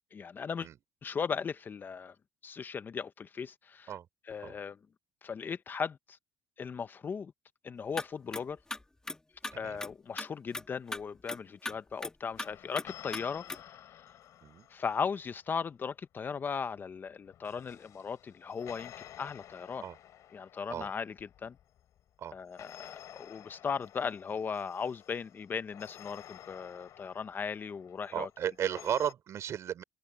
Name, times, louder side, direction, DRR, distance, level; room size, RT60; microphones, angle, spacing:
voice 1, 0.1-0.7 1.0-2.1 2.4-3.9 4.3-4.8 5.2-6.2 6.6-7.3 7.6-8.6 9.5-13.8 14.7-18.9 19.2-19.8 20.3-21.1 21.4-21.6 22.3-28.3, left 6 dB, 30° left, 0.8 m, -37 dB
sound 1, 7.9-8.1 8.3-8.4 8.7-9.5 9.8-9.9 10.2-10.3 10.5-10.7 10.9-11.0 11.3-11.4 11.7-11.8 12.0-12.5 12.8-12.9 13.1-13.2 13.5-13.6, left 2 dB, 10° left, 2.2 m, -37 dB
voice 2, 9.5-9.8 11.7-11.8 14.4-14.7 19.8-20.0 20.7-20.9 22.2-22.3 28.1-29.8, right 9 dB, 50° right, 3.3 m, -35 dB
sound 2, 12.4-15.5 17.1-22.0 22.6-29.1, left 11 dB, 60° left, 3.2 m, -52 dB
cardioid pair, 110°, 6 cm